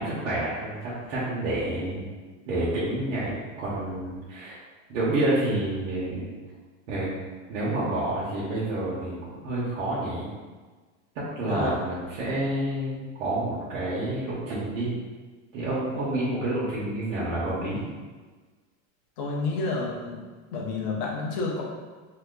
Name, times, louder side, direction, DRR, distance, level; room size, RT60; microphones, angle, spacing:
voice 1, 0.0-2.1 2.5-4.6 4.9-6.3 6.9-7.1 7.5-10.3 11.3-14.9 15.5-17.8, right 1 dB, 90° right, -9 dB, 1.0 m, -29 dB
voice 2, 11.4-11.8 19.2-20.2 20.5-21.6, left 3 dB, 35° left, -2 dB, 0.5 m, -29 dB
2.8 x 2.2 x 3.6 m, 1.4 s
supercardioid pair, 180°, 38 cm